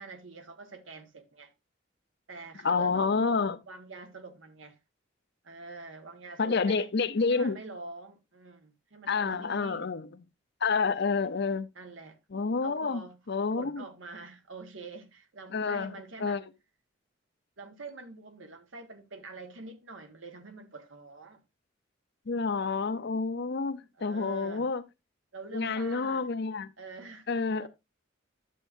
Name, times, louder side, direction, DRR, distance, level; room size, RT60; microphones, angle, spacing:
voice 1, 0.0-1.5 2.3-3.2 3.7-4.8 5.4-6.9 7.3-9.9 11.7-12.2 12.6-13.2 13.5-16.4 17.6-21.4 24.0-24.7 25.3-26.2 26.8-27.2 27.6-27.7, right 3 dB, 75° right, 1.4 m, -45 dB
voice 2, 2.6-3.6 6.4-7.6 9.1-10.1 10.6-11.7 12.3-13.0 13.3-13.8 15.5-16.4 22.3-24.8 25.5-26.7 27.3-27.7, left 4 dB, 55° left, 0.6 m, -29 dB
11.0 x 7.4 x 2.6 m
head